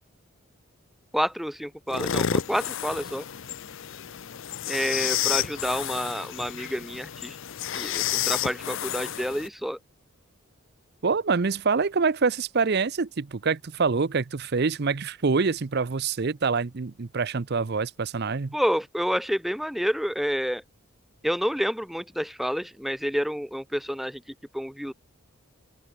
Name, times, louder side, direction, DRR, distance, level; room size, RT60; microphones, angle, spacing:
voice 1, 1.1-3.2 4.7-7.4 7.7-9.8 18.5-20.6 21.2-24.2 24.5-24.9, equal, ahead, 1.5 m, -29 dB
sound 1, 1.9-9.5, left 9 dB, 60° left, 0.6 m, -30 dB
voice 2, 11.0-18.5, right 4 dB, 45° right, 0.6 m, -25 dB
open air
head